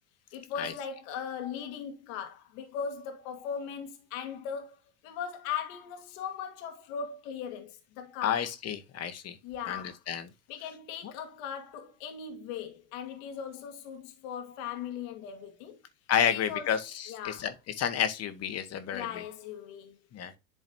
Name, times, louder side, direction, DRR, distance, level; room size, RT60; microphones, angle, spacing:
voice 1, 0.3-8.5 9.4-10.0 10.5-15.8 16.3-17.5 18.9-20.0, left 7 dB, 60° left, 1.8 m, -39 dB
voice 2, 8.2-9.3 9.7-10.2 16.1-16.8 17.2-17.5 17.8-19.1 20.1-20.3, left 9 dB, 35° left, 1.3 m, -30 dB
11.0 x 3.9 x 2.7 m
hypercardioid pair, 105°, 45 cm